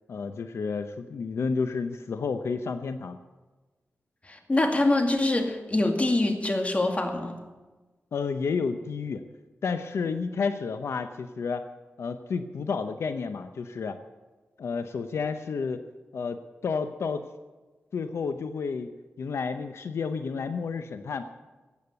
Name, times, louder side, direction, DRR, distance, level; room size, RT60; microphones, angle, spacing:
voice 1, 0.1-3.2 8.1-9.2 9.6-11.7 12.0-14.0 14.6-15.8 16.1-17.3 17.9-18.9 19.2-21.2, left 5 dB, 85° left, 9 dB, 0.7 m, -31 dB
voice 2, 4.3-7.4, left 2 dB, 30° left, 4 dB, 2.2 m, -24 dB
15.5 x 8.7 x 8.0 m, 1.2 s
wide cardioid pair, 85°, 4 cm